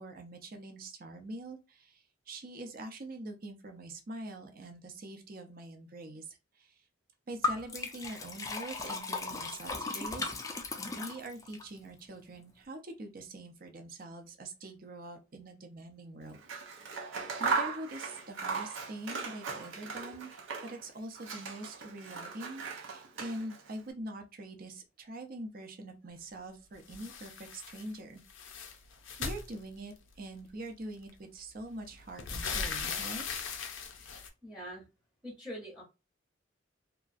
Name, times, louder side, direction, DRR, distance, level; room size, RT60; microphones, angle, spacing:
voice 1, 0.0-6.7 7.3-16.4 16.9-20.3 20.6-28.2 29.2-33.2, right 1 dB, 50° right, 0.6 m, -44 dB
Liquid, 7.4-11.6, left 3 dB, 15° left, 0.4 m, -36 dB
Scissors, 16.3-20.9 21.1-23.7, right 5 dB, 85° right, 0.7 m, -37 dB
sound 1, 26.9-27.9 28.2-30.1 31.1-31.2 31.6-34.3, left 5 dB, 85° left, 0.6 m, -39 dB
voice 2, 34.0-34.9 35.2-35.8, equal, ahead, 0.8 m, -45 dB
2.9 x 2.4 x 2.5 m
head